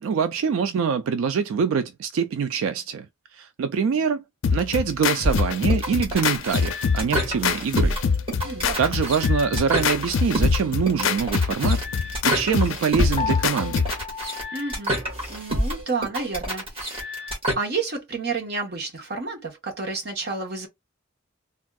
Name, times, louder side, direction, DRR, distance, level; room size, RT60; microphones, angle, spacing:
voice 1, 0.0-3.1 3.3-4.2 4.5-8.0 8.8-13.8, right 6 dB, 85° right, 0.3 m, -24 dB
sound 1, 4.4-14.0, left 6 dB, 75° left, 0.4 m, -25 dB
sound 2, 5.2-17.5, equal, 30° right, 1.5 m, -28 dB
voice 2, 8.4-8.8 14.5-15.0 15.3-17.3 17.6-20.7, right 4 dB, 55° right, 1.0 m, -30 dB
Piano, 13.2-15.7, left 6 dB, 30° left, 0.7 m, -35 dB
3.5 x 2.3 x 2.3 m
head